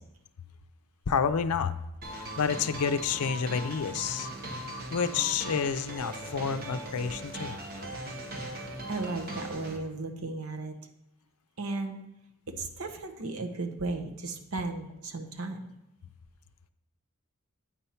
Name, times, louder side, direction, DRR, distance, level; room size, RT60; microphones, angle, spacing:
voice 1, 1.1-1.8 2.1-4.3 4.9-7.6, left 6 dB, 85° left, 11 dB, 0.5 m, -29 dB
sound 1, 2.0-9.8, right 1 dB, 45° right, 1.1 m, -39 dB
voice 2, 8.9-10.8 11.6-12.0 12.5-15.6, right 3 dB, 70° right, 6 dB, 0.8 m, -35 dB
8.7 x 4.4 x 5.5 m, 0.87 s
head